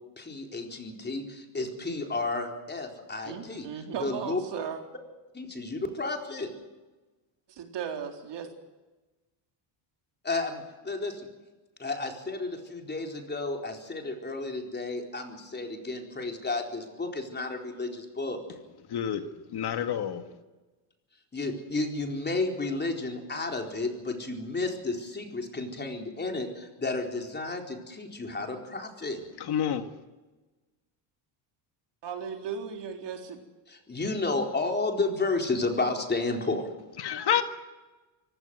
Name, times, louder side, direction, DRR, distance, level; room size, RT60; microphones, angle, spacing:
voice 1, 0.2-3.7 4.0-4.4 5.3-6.5 10.2-11.3 11.8-18.4 21.3-29.2 33.7-36.7, left 3 dB, 20° left, 3 dB, 4.2 m, -32 dB
voice 2, 3.2-4.8 7.5-8.5 32.0-33.4, right 7 dB, 55° right, 4 dB, 3.8 m, -36 dB
voice 3, 18.9-19.2 19.5-20.2 29.5-29.8 37.0-37.4, left 9 dB, 50° left, 8 dB, 1.8 m, -28 dB
24.0 x 17.0 x 7.8 m, 1.2 s
cardioid pair, 120°, 50 cm